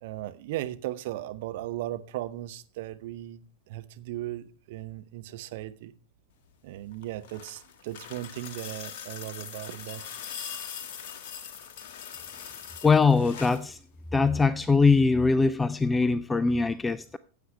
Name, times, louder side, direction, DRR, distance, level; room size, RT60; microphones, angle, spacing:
voice 1, 0.0-5.9 6.6-10.0, right 14 dB, 50° right, 0.9 m, -37 dB
sound 1, 6.9-13.7 15.0-15.1, left 8 dB, 50° left, 1.4 m, -41 dB
voice 2, 12.8-13.8 14.1-17.2, left 4 dB, 10° left, 0.4 m, -22 dB
15.0 x 7.9 x 3.2 m
figure-of-eight pair, 90°, 0 cm